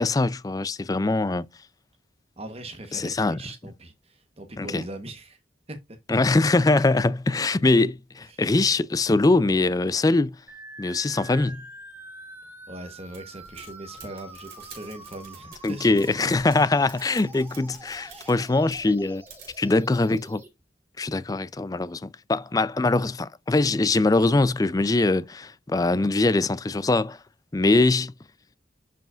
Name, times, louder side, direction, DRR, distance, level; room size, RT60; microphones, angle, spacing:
voice 1, 0.0-1.4 2.9-3.4 4.6-4.8 6.1-10.3 10.8-11.6 15.6-19.2 19.6-20.4 21.0-27.2 27.5-28.1, left 2 dB, 20° left, 0.4 m, -22 dB
voice 2, 2.4-5.4 5.7-6.0 8.3-8.4 12.7-16.0 18.0-18.4, right 1 dB, 35° right, 1.1 m, -40 dB
sound 1, 10.5-20.5, right 1 dB, 10° right, 1.6 m, -46 dB
sound 2, 13.1-18.9 19.3-19.6, right 5 dB, 50° right, 3.6 m, -48 dB
10.5 x 5.1 x 2.4 m
head